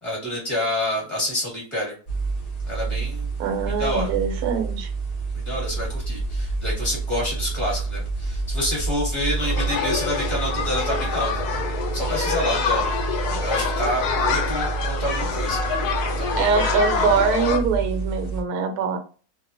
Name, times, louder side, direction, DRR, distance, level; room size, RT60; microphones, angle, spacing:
voice 1, 0.0-1.9 2.6-3.3 3.7-4.1 5.3-11.4 11.9-12.8 13.4-15.6 16.2-16.5, left 1 dB, 20° left, 1.2 m, -28 dB
sound 1, 2.1-18.4, right 4 dB, 50° left, 0.7 m, -29 dB
voice 2, 3.4-4.9 16.4-19.0, right 5 dB, 75° right, 1.1 m, -23 dB
sound 2, 9.4-17.6, left 6 dB, 85° left, 1.2 m, -26 dB
2.7 x 2.1 x 2.5 m
omnidirectional pair, 1.7 m